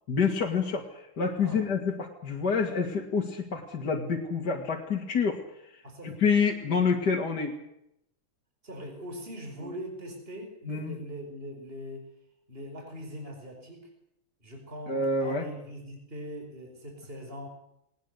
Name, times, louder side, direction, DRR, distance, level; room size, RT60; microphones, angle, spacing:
voice 1, 0.1-5.4 6.0-7.5 10.7-11.0 14.9-15.5, left 5 dB, 55° left, 0 dB, 2.8 m, -27 dB
voice 2, 5.8-6.4 8.6-12.1 12.5-13.8 14.4-17.5, equal, 25° right, 2 dB, 5.1 m, -41 dB
20.5 x 19.0 x 8.1 m, 0.80 s
omnidirectional pair, 2.2 m